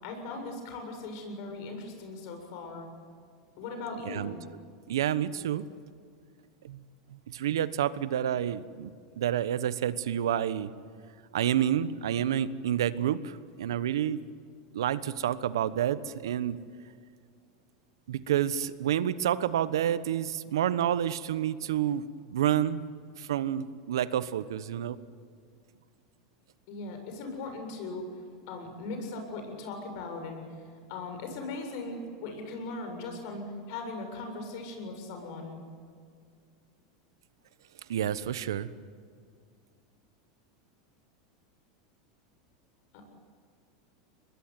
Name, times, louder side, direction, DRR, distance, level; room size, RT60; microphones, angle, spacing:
voice 1, 0.0-2.9 3.6-4.4 26.7-28.1 28.5-30.4 30.9-35.6 42.9-43.1, left 3 dB, 65° left, 5 dB, 7.4 m, -39 dB
voice 2, 4.9-5.7 6.6-6.8 7.3-8.9 9.2-10.7 11.3-14.2 14.7-16.6 18.1-22.8 23.2-25.0 37.9-38.7, right 10 dB, 85° right, 15 dB, 1.1 m, -29 dB
24.5 x 21.0 x 9.6 m, 2.2 s
hypercardioid pair, 110°, 2 cm